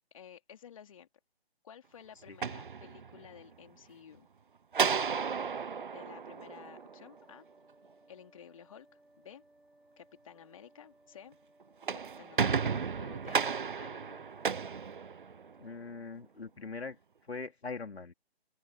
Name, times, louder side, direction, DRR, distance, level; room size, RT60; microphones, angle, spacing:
voice 1, 0.1-1.1 1.6-4.3 5.9-7.5 8.1-9.4 10.0-11.4 11.9-13.5 13.8-14.3, left 8 dB, 30° left, 3.6 m, -53 dB
sound 1, 2.2-3.4 4.7-7.2 11.6-15.7, right 6 dB, 50° right, 1.0 m, -33 dB
sound 2, 6.0-15.7, right 1 dB, ahead, 0.8 m, -65 dB
voice 2, 15.6-18.1, left 4 dB, 75° left, 3.3 m, -42 dB
open air
figure-of-eight pair, 165°, 32 cm